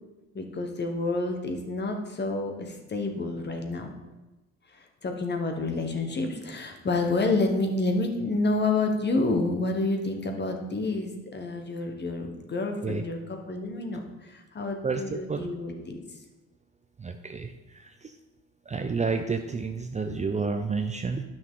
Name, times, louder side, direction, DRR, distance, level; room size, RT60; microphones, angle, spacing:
voice 1, 0.3-3.9 4.7-16.0, left 2 dB, 30° left, 4 dB, 1.4 m, -29 dB
voice 2, 14.8-15.5 17.0-17.5 17.8-18.1 18.7-21.2, right 4 dB, 20° right, 6 dB, 0.5 m, -30 dB
10.0 x 6.0 x 3.8 m, 1.1 s
cardioid pair, 90°, 33 cm